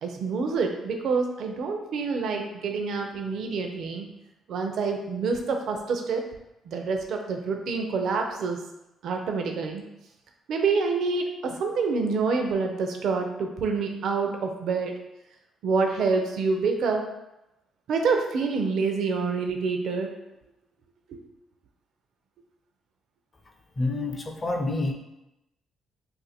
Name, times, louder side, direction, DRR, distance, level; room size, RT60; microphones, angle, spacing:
voice 1, 0.0-4.1 4.5-6.2 6.7-8.6 9.0-9.8 10.5-14.9 15.6-17.1 17.9-20.1 21.1-21.2, right 4 dB, 70° right, 3 dB, 0.5 m, -27 dB
voice 2, 23.8-24.9, left 2 dB, 30° left, 3 dB, 0.5 m, -28 dB
2.6 x 2.5 x 4.1 m, 0.91 s
cardioid pair, 90°, 0 cm